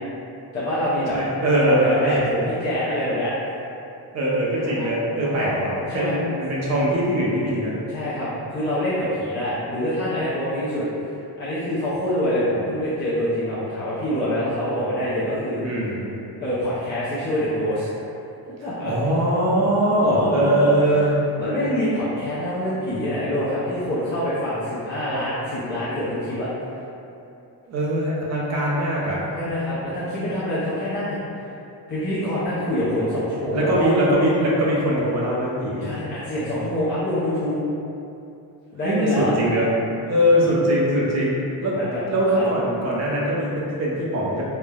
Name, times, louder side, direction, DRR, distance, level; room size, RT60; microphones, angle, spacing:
voice 1, 0.5-1.2 1.6-3.3 4.6-4.9 5.2-5.5 5.9-6.2 7.9-15.7 16.4-17.9 18.6-18.9 20.0-20.7 21.4-26.5 29.4-31.4 31.9-33.9 35.7-37.6 38.7-39.3 40.1-40.4 41.7-42.0 42.3-42.4, left 1 dB, 25° left, -12 dB, 0.4 m, -26 dB
voice 2, 1.1-2.2 4.1-7.7 15.6-16.0 18.8-21.1 27.7-29.2 33.5-35.9 38.8-39.7 40.0-41.8 42.1-44.4, right 1 dB, 40° right, -5 dB, 0.5 m, -21 dB
3.2 x 2.0 x 2.2 m, 2.7 s
wide cardioid pair, 165°, 40 cm